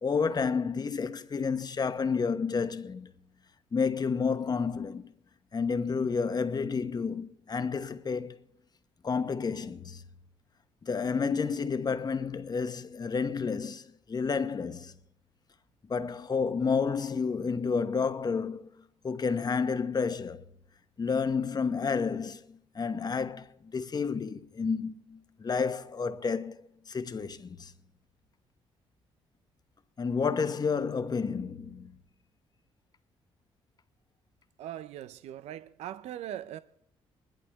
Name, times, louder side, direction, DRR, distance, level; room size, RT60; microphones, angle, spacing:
voice 1, 0.0-3.1 3.7-5.1 5.5-8.4 9.0-10.0 10.8-14.9 15.9-18.7 19.0-20.4 21.0-27.7 30.0-32.0, left 5 dB, 40° left, 1.1 m, -30 dB
voice 2, 34.6-36.6, right 11 dB, 80° right, 0.5 m, -40 dB
21.5 x 11.5 x 3.5 m
supercardioid pair, 70°, 11 cm